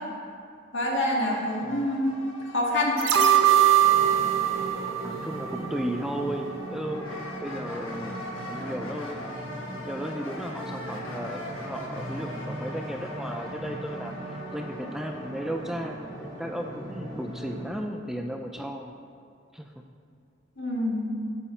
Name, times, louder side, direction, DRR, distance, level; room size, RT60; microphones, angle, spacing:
voice 1, 0.7-2.2 2.5-3.0 20.6-21.1, left 1 dB, 65° left, -2 dB, 1.7 m, -26 dB
sound 1, 1.2-16.6, left 1 dB, 85° left, 1.3 m, -42 dB
sound 2, 3.0-6.1 6.5-6.6, right 10 dB, 75° right, 0.7 m, -22 dB
sound 3, 3.8-17.7, right 1 dB, 20° right, 2.2 m, -39 dB
voice 2, 5.0-9.5 9.8-16.0 16.4-18.9 19.5-19.7, equal, ahead, 3 dB, 0.4 m, -35 dB
8.3 x 7.8 x 4.3 m, 2.4 s
head